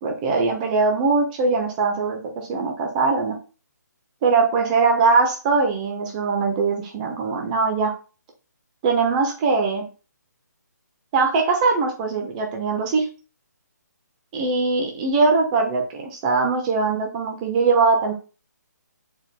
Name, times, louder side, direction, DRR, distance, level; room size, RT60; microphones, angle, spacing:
voice 1, 0.0-3.3 4.2-7.9 8.8-9.9 11.1-13.0 14.3-18.1, right 4 dB, 25° right, 2 dB, 1.2 m, -21 dB
10.0 x 4.5 x 2.3 m, 0.34 s
figure-of-eight pair, 140°, 10 cm